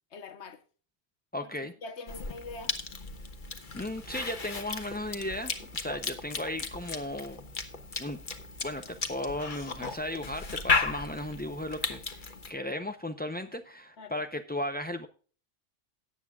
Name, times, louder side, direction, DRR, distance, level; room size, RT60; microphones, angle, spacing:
voice 1, 0.1-0.6 1.4-2.8 14.0-14.2, left 3 dB, 70° left, 1.4 m, -44 dB
voice 2, 1.3-1.7 3.7-7.4 8.0-8.2 8.6-15.1, left 1 dB, 15° left, 0.3 m, -36 dB
Cough / Chewing mastication, 2.1-12.5, left 4 dB, 45° left, 1.2 m, -35 dB
18.0 x 8.3 x 2.4 m
omnidirectional pair, 1.2 m